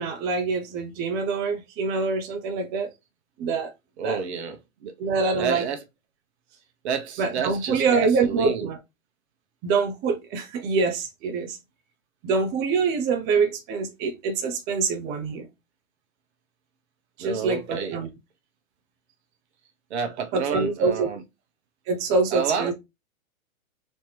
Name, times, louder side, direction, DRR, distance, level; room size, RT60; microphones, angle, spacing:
voice 1, 0.0-2.9 3.4-3.7 4.0-4.2 5.0-5.7 7.2-8.8 9.6-11.6 12.2-15.5 17.2-18.1 20.3-21.1 21.9-22.7, right 4 dB, 25° right, 0.7 m, -25 dB
voice 2, 4.0-4.9 5.4-5.8 6.8-8.7 17.2-18.0 19.9-21.2 22.3-22.7, right 6 dB, 50° right, 1.2 m, -30 dB
4.2 x 2.9 x 3.3 m
hypercardioid pair, 130°, 41 cm